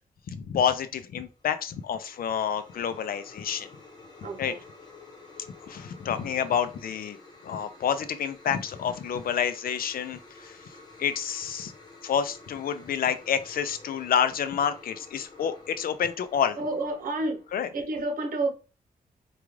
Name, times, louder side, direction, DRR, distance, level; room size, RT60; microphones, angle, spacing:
voice 1, 0.3-3.7 4.4-4.5 5.6-7.2 7.4-10.6 11.0-11.7 12.0-16.6 17.5-17.7, left 8 dB, 80° left, 0.5 m, -28 dB
sound 1, 1.3-17.7, left 3 dB, 30° left, 1.0 m, -51 dB
voice 2, 4.2-4.6 16.6-17.4 17.7-18.5, right 2 dB, 65° right, 1.0 m, -29 dB
4.8 x 2.4 x 3.1 m
wide cardioid pair, 145°, 15 cm